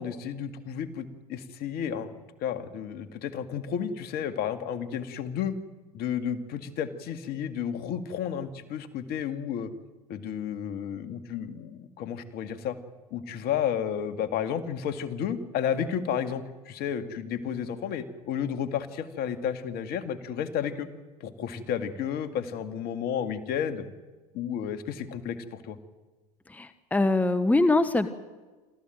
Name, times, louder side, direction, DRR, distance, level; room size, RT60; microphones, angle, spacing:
voice 1, 0.0-2.1 2.4-5.6 5.9-9.7 10.1-12.8 13.1-20.9 21.2-23.9 24.3-25.8, left 8 dB, 55° left, 10 dB, 2.1 m, -32 dB
voice 2, 26.5-28.1, left 2 dB, 10° left, 12 dB, 1.1 m, -23 dB
26.5 x 14.0 x 9.2 m, 1.3 s
hypercardioid pair, 90°, 19 cm